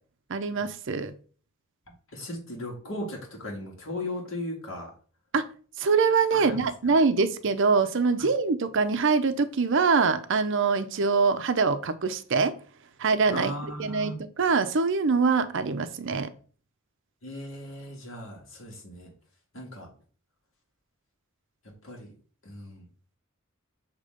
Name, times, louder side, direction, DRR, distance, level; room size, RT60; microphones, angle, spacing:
voice 1, 0.3-1.1 5.3-5.4 5.8-12.5 13.0-16.3, right 4 dB, 60° right, 10 dB, 0.6 m, -24 dB
voice 2, 2.1-4.9 6.3-6.7 13.3-14.1 17.2-19.1 19.5-19.9 21.8-22.1 22.5-22.8, left 1 dB, 60° left, 0 dB, 2.0 m, -37 dB
6.7 x 3.0 x 5.0 m, 0.41 s
head